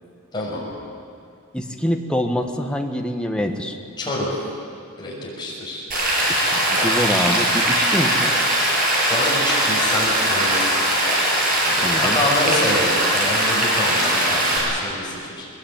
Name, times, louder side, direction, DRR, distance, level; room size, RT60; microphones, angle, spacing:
voice 1, 0.3-0.7 4.0-4.3 5.0-5.8 8.9-10.7 11.6-15.5, left 1 dB, 20° left, -4 dB, 6.4 m, -27 dB
voice 2, 1.5-3.8 6.3-6.4 6.7-8.4 11.8-12.2, equal, 5° left, 3 dB, 1.5 m, -25 dB
Rain, 5.9-14.6, right 1 dB, 40° right, 7.9 m, -20 dB
22.0 x 21.5 x 9.0 m, 2.4 s
head